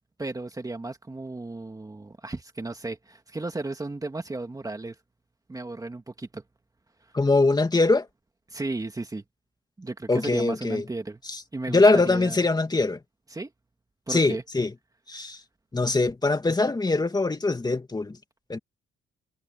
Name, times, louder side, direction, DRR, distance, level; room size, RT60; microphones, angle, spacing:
voice 1, 0.2-5.0 5.5-6.4 8.5-9.2 9.8-11.2 11.5-12.4 13.3-13.5 14.1-14.4, right 2 dB, 20° right, 2.1 m, -34 dB
voice 2, 7.1-8.1 10.1-10.8 11.3-11.4 11.7-13.0 14.1-14.7 15.1-15.4 15.7-18.2 18.5-18.6, left 3 dB, 20° left, 2.6 m, -22 dB
cardioid pair, 90°, 20 cm